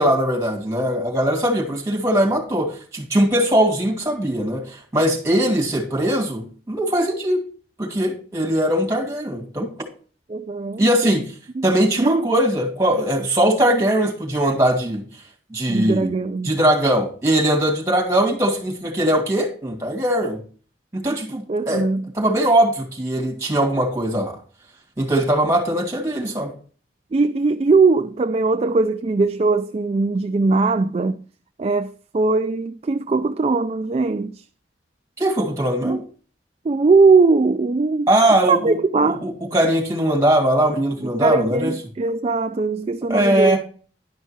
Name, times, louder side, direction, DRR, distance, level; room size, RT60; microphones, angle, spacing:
voice 1, 0.0-7.4 7.8-9.7 10.8-11.2 11.6-15.0 15.5-16.1 16.4-20.4 20.9-21.9 22.1-24.4 25.0-26.5 35.2-36.0 38.1-38.8 39.0-41.7 43.1-43.6, right 1 dB, 15° right, 2.5 m, -20 dB
voice 2, 10.3-11.2 11.5-11.7 12.0-12.3 15.7-16.5 21.5-22.0 27.1-31.2 31.6-34.4 35.8-36.0 36.6-38.1 38.5-39.2 41.2-43.6, right 3 dB, 35° right, 0.3 m, -20 dB
11.5 x 5.5 x 4.5 m
head